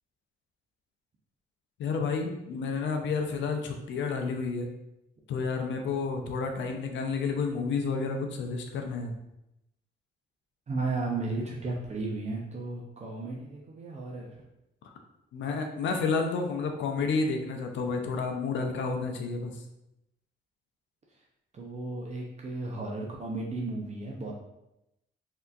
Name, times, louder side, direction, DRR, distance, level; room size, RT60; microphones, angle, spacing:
voice 1, 1.8-4.7 5.3-9.2 14.8-14.9 15.3-19.6, left 4 dB, 70° left, 4 dB, 0.5 m, -30 dB
voice 2, 10.7-14.4 21.1-21.2 21.5-24.3, right 3 dB, 35° right, -2 dB, 0.5 m, -34 dB
3.3 x 2.8 x 2.3 m, 0.87 s
cardioid pair, 90°, 20 cm